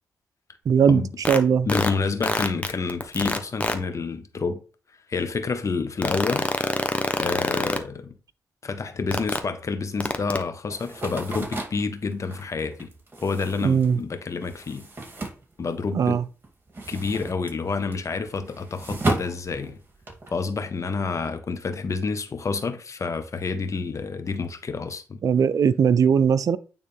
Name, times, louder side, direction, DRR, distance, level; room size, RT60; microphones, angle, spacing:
voice 1, 0.7-1.0 1.3-1.7 13.6-14.0 15.9-16.2 25.2-26.6, right 7 dB, 70° right, 0.4 m, -19 dB
sound 1, 1.2-1.4 1.7-1.9 2.2-3.7 6.0-7.8 9.1-9.4 10.0-10.4, left 2 dB, 20° left, 1.1 m, -23 dB
voice 2, 1.7-4.6 5.1-6.4 7.2-8.2 8.6-12.9 13.2-14.9 15.6-16.2 16.9-19.8 20.3-25.2, left 4 dB, 55° left, 1.2 m, -28 dB
sound 2, 10.7-16.1 16.4-20.3, right 2 dB, 35° right, 2.8 m, -34 dB
9.1 x 3.6 x 3.5 m
cardioid pair, 50°, 6 cm